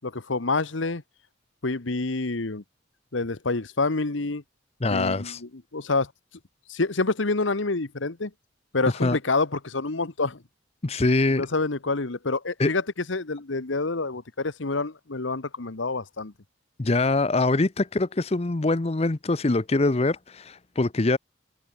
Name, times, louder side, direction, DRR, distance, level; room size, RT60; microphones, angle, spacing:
voice 1, 0.0-1.0 1.6-2.6 3.1-4.4 4.9-6.1 6.7-8.3 8.7-10.4 11.4-12.8 13.1-16.3, left 3 dB, 75° left, 1.3 m, -27 dB
voice 2, 4.8-5.4 9.0-9.2 10.8-11.5 12.6-12.7 16.8-21.2, left 2 dB, 30° left, 0.7 m, -23 dB
head